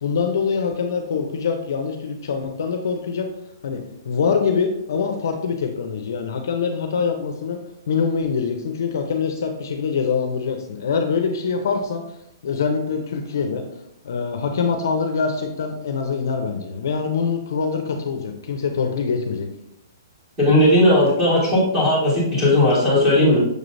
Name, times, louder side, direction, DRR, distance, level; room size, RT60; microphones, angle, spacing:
voice 1, 0.0-3.3 3.6-7.6 7.9-12.0 12.4-13.7 14.0-19.5, left 5 dB, 55° left, 5 dB, 0.6 m, -24 dB
voice 2, 20.4-23.4, left 1 dB, 5° right, -9 dB, 1.7 m, -16 dB
6.5 x 3.2 x 2.6 m, 0.80 s
hypercardioid pair, 175°, 2 cm